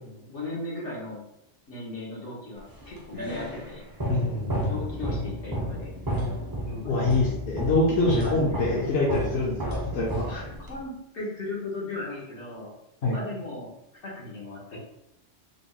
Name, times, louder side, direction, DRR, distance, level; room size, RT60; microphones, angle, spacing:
voice 1, 0.0-1.2 1.7-3.9 4.6-5.9 6.7-7.1 8.2-8.9 10.6-12.7 13.0-13.7 14.0-14.8, left 2 dB, 85° left, -5 dB, 1.5 m, -37 dB
sound 1, 2.7-10.8, equal, 25° right, 0.5 m, -32 dB
voice 2, 4.1-4.8 6.8-10.5 13.0-13.2, left 2 dB, 70° left, -4 dB, 1.0 m, -25 dB
3.7 x 2.1 x 3.7 m, 0.81 s
omnidirectional pair, 1.1 m